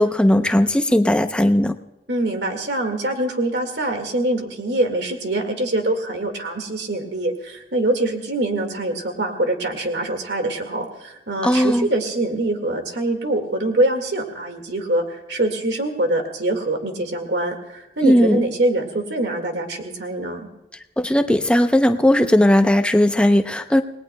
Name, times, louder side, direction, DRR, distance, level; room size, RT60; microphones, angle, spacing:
voice 1, 0.0-1.8 11.4-11.9 18.0-18.5 21.0-23.8, left 1 dB, 5° left, 7 dB, 0.7 m, -17 dB
voice 2, 2.1-20.5, right 1 dB, 80° right, 5 dB, 2.0 m, -24 dB
28.5 x 19.5 x 2.3 m, 1.0 s
head